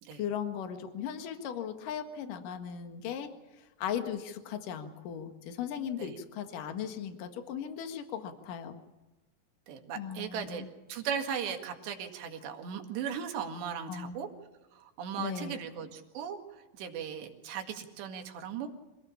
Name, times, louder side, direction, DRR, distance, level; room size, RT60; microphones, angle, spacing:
voice 1, 0.2-3.3 3.6-8.8 10.0-10.7 13.9-14.1 15.2-15.6, left 8 dB, 60° left, 7 dB, 3.1 m, -37 dB
voice 2, 9.7-14.3 14.7-16.4 16.8-18.7, right 7 dB, 90° right, 4 dB, 4.2 m, -37 dB
26.0 x 17.5 x 7.2 m, 1.1 s
omnidirectional pair, 4.8 m